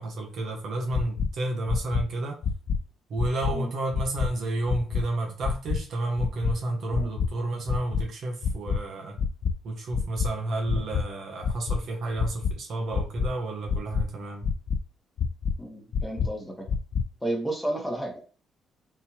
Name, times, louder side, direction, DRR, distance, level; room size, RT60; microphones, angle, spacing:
voice 1, 0.0-2.4 3.1-9.2 9.6-14.5, right 2 dB, 65° right, 0.9 m, -31 dB
sound 1, 0.9-1.3 1.7-2.0 2.4-2.8 3.2-3.5 3.9-4.3 4.7-5.0 5.4-5.8 6.2-6.5 6.9-7.3 7.7-8.0 8.4-8.8 9.2-9.5 9.9-10.3 10.7-11.0 11.4-11.8 12.2-12.5 12.9-13.3 13.7-14.0 14.4-14.8 15.2-15.5 15.9-16.3 16.7-17.0, left 6 dB, 65° left, 0.3 m, -26 dB
voice 2, 15.6-16.7 17.2-18.2, right 1 dB, 5° left, 1.1 m, -32 dB
3.8 x 2.7 x 2.8 m
cardioid pair, 90°, 0 cm